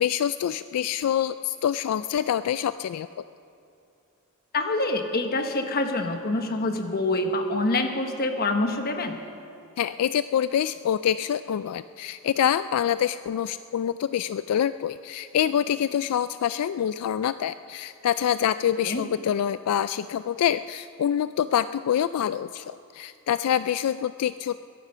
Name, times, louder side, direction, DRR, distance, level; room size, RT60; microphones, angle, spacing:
voice 1, 0.0-3.1 9.8-24.6, left 9 dB, 80° left, 14 dB, 0.3 m, -26 dB
voice 2, 4.5-9.2 18.8-19.0, left 2 dB, 45° left, 5 dB, 1.2 m, -26 dB
22.0 x 11.0 x 5.6 m, 2.6 s
head